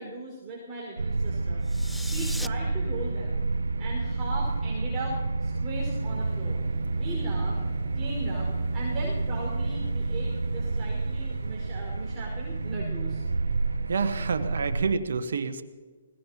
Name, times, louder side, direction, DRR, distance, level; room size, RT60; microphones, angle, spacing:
voice 1, 0.0-1.6 2.0-3.4 3.8-6.6 6.9-7.6 8.0-13.2, right 2 dB, 20° right, -5 dB, 5.3 m, -38 dB
sound 1, 1.0-15.0, right 3 dB, 90° right, 0.8 m, -29 dB
sound 2, 1.6-2.5, left 1 dB, 5° left, 0.3 m, -38 dB
sound 3, 5.8-12.8, right 2 dB, 40° right, 2.4 m, -44 dB
voice 2, 13.9-15.6, right 5 dB, 70° right, 8 dB, 1.3 m, -28 dB
20.5 x 18.0 x 3.0 m, 1.5 s
hypercardioid pair, 140°, 0 cm